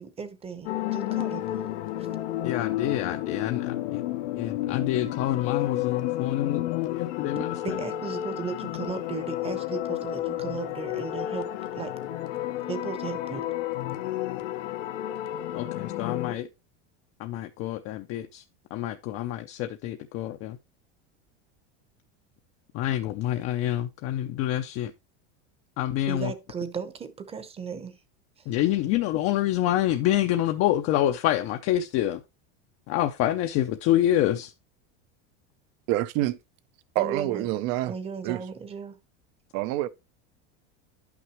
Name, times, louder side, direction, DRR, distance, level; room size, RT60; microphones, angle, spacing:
voice 1, 0.0-1.4 7.3-11.5 11.8-11.9 12.7-13.5 26.1-28.0 28.4-28.5 37.0-37.5 37.9-39.0, right 6 dB, 15° right, 0.8 m, -36 dB
sound 1, 0.6-16.3, left 14 dB, 90° left, 1.1 m, -31 dB
voice 2, 2.4-4.0 4.4-7.8 15.5-16.5 17.2-18.4 18.7-20.6 22.7-24.9 25.8-26.3 28.5-32.2 32.9-34.5, left 13 dB, 40° left, 0.6 m, -27 dB
voice 3, 35.9-36.4 36.9-37.9 38.2-38.4 39.5-39.9, right 15 dB, 50° right, 0.6 m, -27 dB
10.5 x 6.0 x 3.0 m
supercardioid pair, 150°, 34 cm